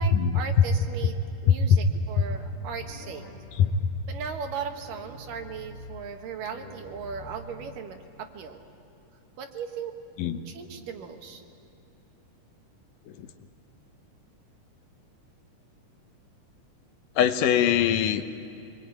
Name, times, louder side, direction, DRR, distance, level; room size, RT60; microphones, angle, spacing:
voice 1, 0.0-3.3 4.1-8.7 9.4-9.9 10.5-11.4, right 6 dB, 90° right, 4 dB, 3.2 m, -37 dB
sound 1, 2.2-4.2 4.6-6.0 6.4-8.0, left 1 dB, 40° left, 5.9 m, -46 dB
voice 2, 17.2-18.2, left 9 dB, 80° left, 9 dB, 2.5 m, -21 dB
25.5 x 21.0 x 9.3 m, 2.9 s
omnidirectional pair, 3.8 m